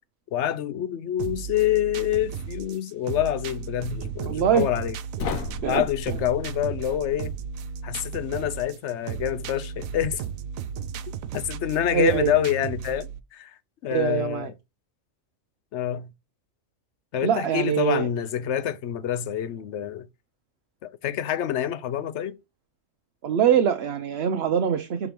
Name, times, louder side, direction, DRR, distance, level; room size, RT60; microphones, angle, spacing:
voice 1, 0.3-4.9 5.6-7.3 7.8-10.2 11.3-13.5 13.8-14.5 15.7-16.1 17.1-20.1 20.8-22.4, left 11 dB, 65° left, 0.9 m, -27 dB
sound 1, 1.2-13.2, right 7 dB, 80° right, 1.1 m, -35 dB
voice 2, 4.3-4.7 5.6-5.8 11.9-12.3 13.9-14.5 17.2-18.1 23.2-25.1, right 8 dB, 55° right, 0.8 m, -23 dB
sound 2, 5.2-8.3, left 4 dB, 80° left, 1.3 m, -36 dB
6.0 x 4.6 x 5.2 m
omnidirectional pair, 1.4 m